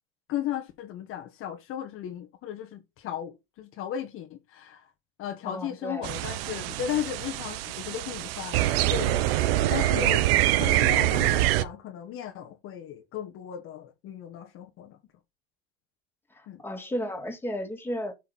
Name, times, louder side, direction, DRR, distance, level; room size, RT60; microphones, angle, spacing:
voice 1, 0.3-4.8 5.2-8.6 8.9-9.3 9.7-15.0 16.5-16.6, left 10 dB, 45° left, 1.5 m, -35 dB
voice 2, 5.4-6.1 16.3-18.1, equal, 5° left, 2.3 m, -33 dB
sound 1, 6.0-11.6, right 15 dB, 65° right, 1.0 m, -25 dB
8.8 x 5.6 x 4.2 m
supercardioid pair, 115°, 31 cm